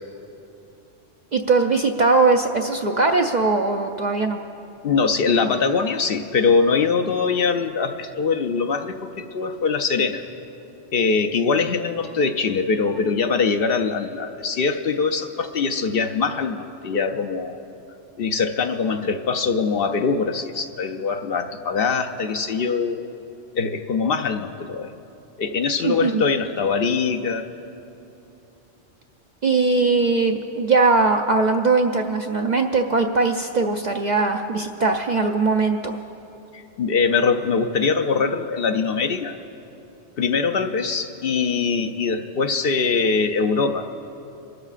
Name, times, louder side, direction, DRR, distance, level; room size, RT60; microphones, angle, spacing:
voice 1, 1.3-4.4 25.8-26.2 29.4-36.0, right 3 dB, 55° right, 3 dB, 0.5 m, -20 dB
voice 2, 4.8-10.2 10.9-17.6 18.2-23.1 23.5-24.9 25.4-27.5 36.5-39.4 40.2-43.9, left 5 dB, 60° left, 5 dB, 0.7 m, -22 dB
27.0 x 13.0 x 2.5 m, 2.8 s
omnidirectional pair, 1.2 m